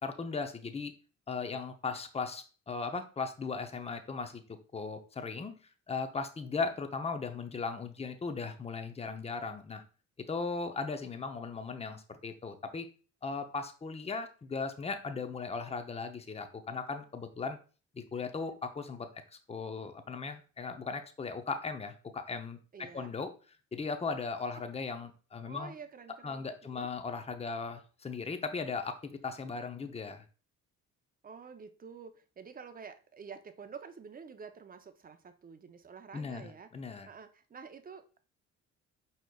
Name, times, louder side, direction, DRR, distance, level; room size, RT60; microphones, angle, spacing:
voice 1, 0.0-0.9 1.3-4.4 4.7-5.6 5.9-9.8 10.3-12.9 13.2-17.6 17.9-23.3 23.7-25.7 26.2-30.2 36.1-37.1, left 4 dB, 20° left, 8 dB, 0.6 m, -37 dB
voice 2, 22.7-23.1 24.5-24.6 25.4-26.4 26.7-26.9 31.2-36.7 37.0-38.2, right 6 dB, 30° right, 9 dB, 0.6 m, -49 dB
4.9 x 4.2 x 2.3 m, 0.36 s
cardioid pair, 90°, 30 cm